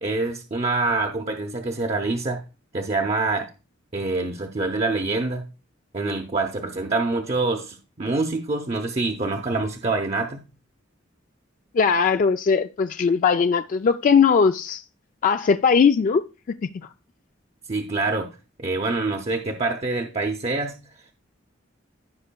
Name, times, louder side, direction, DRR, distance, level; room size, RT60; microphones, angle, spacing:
voice 1, 0.0-2.4 2.7-3.5 3.9-5.4 5.9-10.4 17.7-18.3 18.6-20.8, right 3 dB, 35° right, 0.7 m, -25 dB
voice 2, 11.7-14.8 15.2-16.6, left 6 dB, 40° left, 0.3 m, -19 dB
15.5 x 5.4 x 2.2 m
head